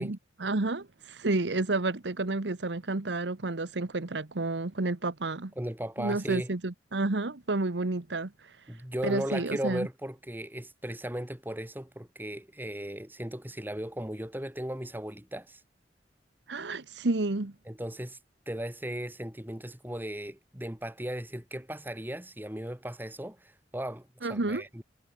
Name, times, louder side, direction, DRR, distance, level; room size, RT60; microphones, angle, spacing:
voice 1, 0.0-5.5 6.0-8.3 9.0-9.9 16.5-17.5 24.2-24.6, right 2 dB, 90° right, 1.2 m, -30 dB
voice 2, 5.6-6.5 8.7-15.6 17.7-18.2 18.5-24.8, right 1 dB, 10° right, 2.6 m, -36 dB
head